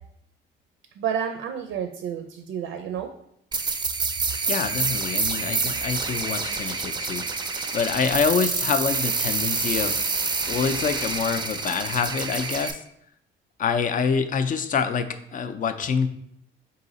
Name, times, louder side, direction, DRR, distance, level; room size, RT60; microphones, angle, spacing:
voice 1, 1.0-3.1, right 8 dB, 85° right, 7 dB, 0.4 m, -30 dB
sound 1, 3.5-12.7, right 4 dB, 20° right, 0.4 m, -27 dB
voice 2, 4.5-7.2 7.7-10.0 10.5-12.8 13.6-16.1, left 6 dB, 45° left, 10 dB, 0.4 m, -26 dB
3.9 x 2.8 x 4.0 m, 0.73 s
cardioid pair, 90°, 20 cm